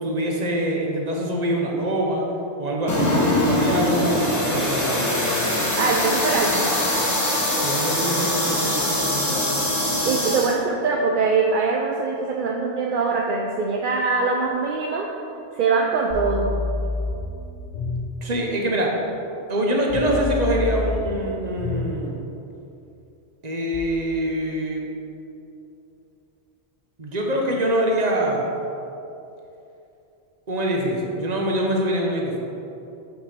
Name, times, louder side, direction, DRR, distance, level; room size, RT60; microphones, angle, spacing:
voice 1, 0.0-2.2 2.6-5.4 7.5-9.6 18.2-19.0 19.5-22.2 23.4-24.8 27.0-28.5 30.5-32.4, right 1 dB, 40° right, -1 dB, 1.0 m, -24 dB
sound 1, 2.9-10.6, left 1 dB, 15° left, 1.0 m, -23 dB
voice 2, 5.7-6.7 10.0-15.1 15.6-16.5, right 4 dB, 60° right, 0 dB, 0.6 m, -22 dB
sound 2, 16.1-18.1 19.9-21.9 23.7-23.8, left 3 dB, 40° left, 0.8 m, -28 dB
6.7 x 5.7 x 4.3 m, 2.8 s
omnidirectional pair, 1.2 m